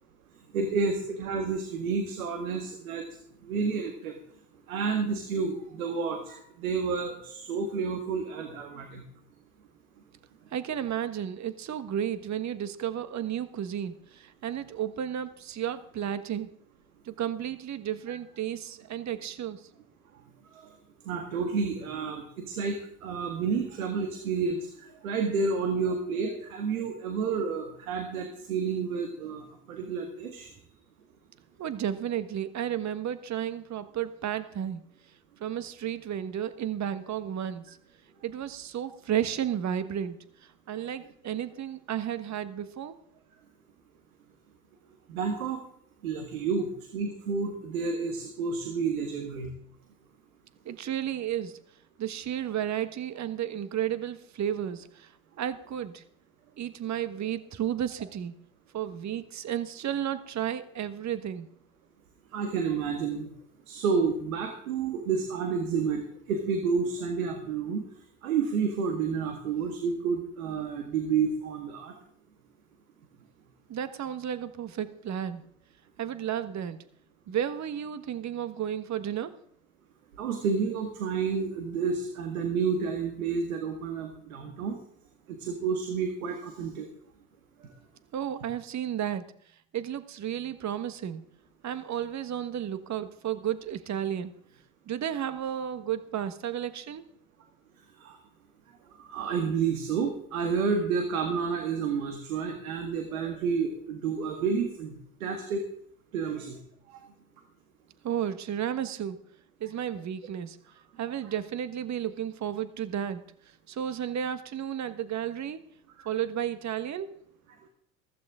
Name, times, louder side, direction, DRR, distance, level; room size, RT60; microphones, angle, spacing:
voice 1, 0.5-3.0 3.4-4.2 4.7-9.0 20.5-20.6 21.1-30.5 45.1-45.6 46.0-49.5 62.3-63.3 63.7-66.0 66.3-67.8 68.2-71.9 80.2-84.8 85.3-86.9 98.0-98.2 99.0-105.6 106.1-106.6 106.9-107.0 111.2-111.3 116.0-116.1, right 5 dB, 90° right, 4 dB, 1.9 m, -30 dB
voice 2, 10.5-16.5 17.0-19.6 31.6-34.8 35.4-37.8 38.2-40.2 40.7-42.9 50.6-51.6 52.0-55.1 55.4-56.0 56.6-58.4 58.7-61.5 73.7-75.4 76.0-76.8 77.3-79.4 88.1-89.2 89.7-91.2 91.6-94.3 94.9-97.0 108.0-109.2 109.6-110.6 111.0-113.2 113.7-115.6 116.0-117.1, right 10 dB, 40° right, 12 dB, 1.4 m, -32 dB
15.0 x 15.0 x 3.7 m, 0.65 s
hypercardioid pair, 70°, 41 cm